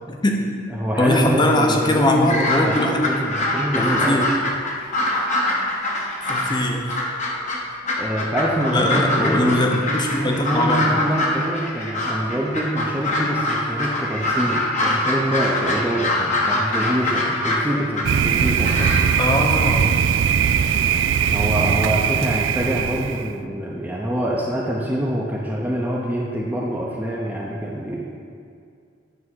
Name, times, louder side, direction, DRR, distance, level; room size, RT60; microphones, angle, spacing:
voice 1, 0.1-0.4 1.0-3.1 3.8-4.3 6.2-7.0 8.7-11.0 19.2-20.0, left 1 dB, 25° left, 2 dB, 0.8 m, -21 dB
voice 2, 0.7-4.3 8.0-9.6 10.1-19.0 21.2-28.1, right 1 dB, 10° right, -5 dB, 0.7 m, -25 dB
sound 1, 2.3-6.6 6.9-19.0, left 1 dB, 40° left, 1.1 m, -24 dB
Thunder, 18.0-23.3, right 7 dB, 90° right, 0.3 m, -20 dB
9.6 x 3.5 x 6.2 m, 2.3 s
head